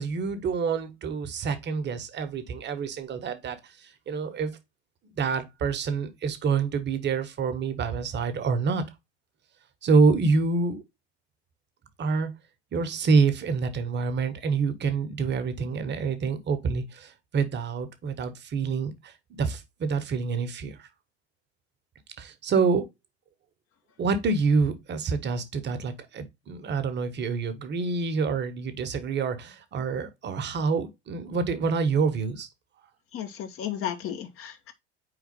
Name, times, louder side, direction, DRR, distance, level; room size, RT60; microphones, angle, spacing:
voice 1, 0.0-3.6 4.1-4.5 5.2-8.8 9.8-10.8 12.0-12.3 12.7-18.9 19.3-20.7 22.2-22.9 24.0-32.5, right 4 dB, 35° right, 1.3 m, -27 dB
voice 2, 33.1-34.7, left 10 dB, 40° left, 1.4 m, -34 dB
4.5 x 3.9 x 5.3 m
hypercardioid pair, 80°, 32 cm